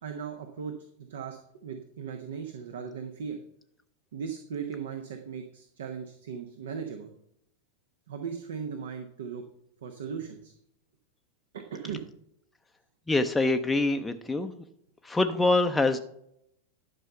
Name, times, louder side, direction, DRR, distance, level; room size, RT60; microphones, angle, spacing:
voice 1, 0.0-3.4 4.1-7.1 8.1-9.4 9.8-10.5 11.5-12.0, right 6 dB, 60° right, 6 dB, 0.9 m, -38 dB
voice 2, 13.1-14.5 15.0-16.0, left 2 dB, 10° left, 5 dB, 0.6 m, -25 dB
11.5 x 5.5 x 5.5 m, 0.75 s
figure-of-eight pair, 90°, 0 cm